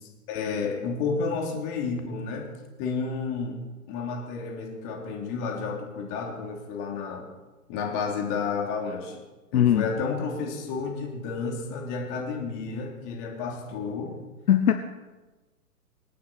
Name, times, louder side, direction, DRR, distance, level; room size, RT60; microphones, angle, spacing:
voice 1, 0.3-2.5 2.8-3.6 3.9-7.2 7.7-9.2 9.5-14.2, left 5 dB, 35° left, 0 dB, 3.2 m, -31 dB
voice 2, 9.5-9.9 14.5-14.7, left 10 dB, 70° left, 7 dB, 1.1 m, -19 dB
25.5 x 9.4 x 4.3 m, 1.2 s
hypercardioid pair, 130°, 47 cm